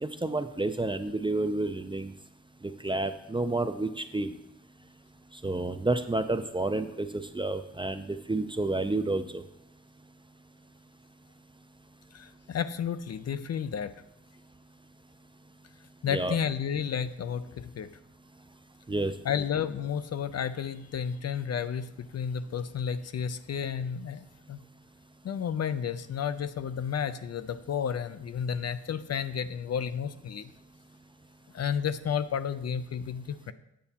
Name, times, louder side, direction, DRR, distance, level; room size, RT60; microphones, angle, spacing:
voice 1, 0.0-2.1 2.6-4.3 5.4-9.4 16.1-16.4 18.9-19.1, right 2 dB, 15° right, 10 dB, 0.4 m, -30 dB
voice 2, 12.1-13.9 16.0-17.9 19.2-24.6 25.2-30.5 31.5-33.5, left 7 dB, 55° left, 12 dB, 0.4 m, -32 dB
8.6 x 6.9 x 2.8 m, 0.83 s
wide cardioid pair, 80°, 30 cm